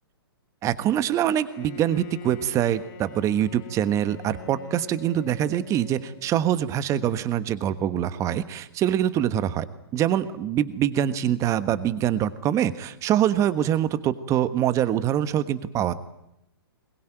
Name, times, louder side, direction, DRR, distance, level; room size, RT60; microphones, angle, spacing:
voice 1, 0.6-9.7 9.9-15.9, right 10 dB, 25° right, 14 dB, 1.3 m, -24 dB
Bowed string instrument, 1.3-6.7, left 9 dB, 50° left, 1.8 m, -44 dB
22.0 x 21.0 x 9.2 m, 0.84 s
hypercardioid pair, 125°, 13 cm